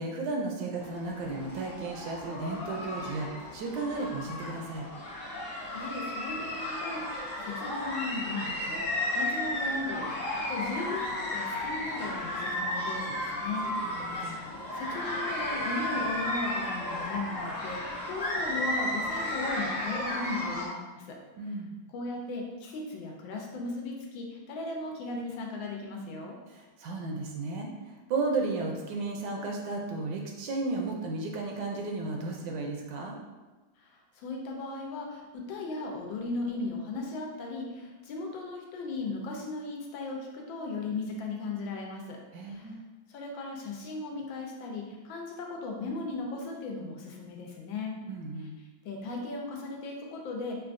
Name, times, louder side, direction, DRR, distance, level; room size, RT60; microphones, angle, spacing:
voice 1, 0.0-4.9 13.8-14.4 21.4-21.8 26.5-33.2 42.3-42.8 48.1-48.5, right 3 dB, 75° right, 1 dB, 1.1 m, -34 dB
sound 1, 0.8-20.7, left 1 dB, 65° left, 0.4 m, -34 dB
voice 2, 5.7-14.1 14.7-21.2 21.9-26.4 33.8-42.2 42.4-42.8 43.1-48.0 48.8-50.6, left 3 dB, 85° left, 0 dB, 1.4 m, -37 dB
5.6 x 2.3 x 2.5 m, 1.2 s
omnidirectional pair, 2.1 m